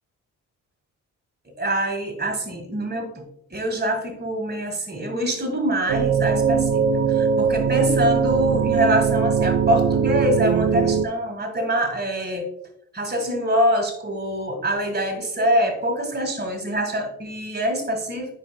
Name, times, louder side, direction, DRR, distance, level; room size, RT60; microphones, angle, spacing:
voice 1, 1.5-3.1 3.5-12.5 12.9-18.4, equal, 25° right, 5 dB, 1.9 m, -25 dB
sound 1, 5.9-11.1, right 6 dB, 40° right, 0.5 m, -20 dB
9.1 x 4.8 x 2.3 m, 0.73 s
hypercardioid pair, 45°, 38 cm